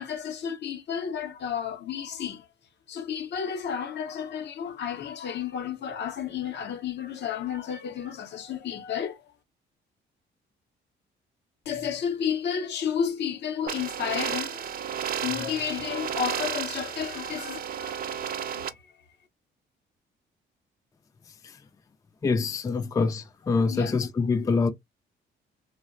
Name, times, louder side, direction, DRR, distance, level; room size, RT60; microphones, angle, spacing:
voice 1, 0.0-2.4 2.9-9.2 11.7-14.7 15.2-18.8 23.7-23.9, left 8 dB, 60° left, 0.7 m, -32 dB
sound 1, 13.7-18.7, right 8 dB, 50° right, 0.4 m, -33 dB
voice 2, 22.2-24.7, left 4 dB, 15° left, 0.3 m, -25 dB
2.7 x 2.1 x 2.4 m
cardioid pair, 90°, 20 cm